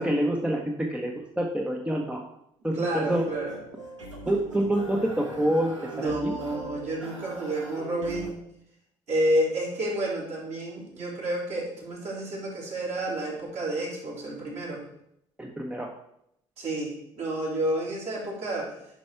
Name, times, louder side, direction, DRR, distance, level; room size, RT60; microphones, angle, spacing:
voice 1, 0.0-2.2 2.6-3.2 4.2-5.8 6.0-6.3 15.4-15.9, right 1 dB, 5° right, 2 dB, 1.0 m, -27 dB
voice 2, 2.7-3.6 5.9-8.4 9.1-14.8 16.6-18.7, right 1 dB, 50° right, -4 dB, 3.7 m, -30 dB
sound 1, 3.1-8.3, right 1 dB, 85° right, 1.1 m, -40 dB
10.5 x 5.3 x 4.7 m, 0.77 s
figure-of-eight pair, 50°, 15 cm